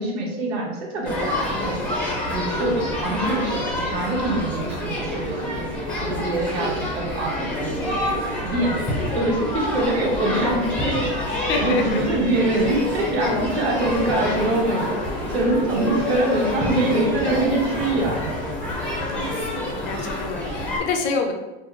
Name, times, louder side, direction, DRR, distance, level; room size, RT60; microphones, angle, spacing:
voice 1, 0.0-1.8 2.3-8.9 9.1-18.3, right 2 dB, 80° right, -2 dB, 1.1 m, -24 dB
sound 1, 1.0-20.8, left 1 dB, 5° left, 0.7 m, -27 dB
voice 2, 11.5-12.0 13.2-13.6 19.1-19.2 19.5-21.3, left 4 dB, 35° left, 3 dB, 0.5 m, -27 dB
3.1 x 2.2 x 3.7 m, 1.1 s
supercardioid pair, 135°, 32 cm